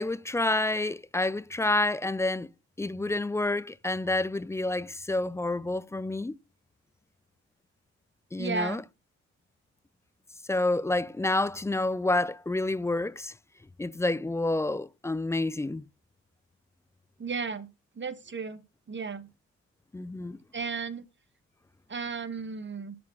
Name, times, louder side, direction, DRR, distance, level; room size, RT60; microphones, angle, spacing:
voice 1, 0.0-2.5 2.8-6.4 8.3-8.8 10.5-13.3 13.8-15.8 19.9-20.4, left 2 dB, 10° left, 0.3 m, -28 dB
voice 2, 8.4-8.8 17.2-17.7 18.0-18.6 18.9-19.3 20.5-21.1 21.9-22.9, right 5 dB, 30° right, 1.3 m, -34 dB
7.1 x 4.4 x 4.8 m
hypercardioid pair, 50°, 38 cm